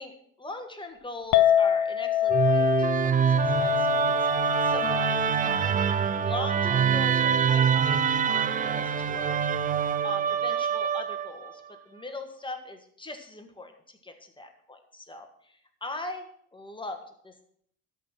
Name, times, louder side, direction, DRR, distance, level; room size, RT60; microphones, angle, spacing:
voice 1, 0.0-9.4 10.0-17.4, left 2 dB, 10° left, 5 dB, 1.8 m, -41 dB
Chink clink, 1.3-7.6, left 10 dB, 50° left, 0.8 m, -27 dB
Musical instrument, 2.3-11.5, right 7 dB, 20° right, 0.4 m, -25 dB
13.0 x 4.4 x 7.5 m, 0.66 s
figure-of-eight pair, 60°, 43 cm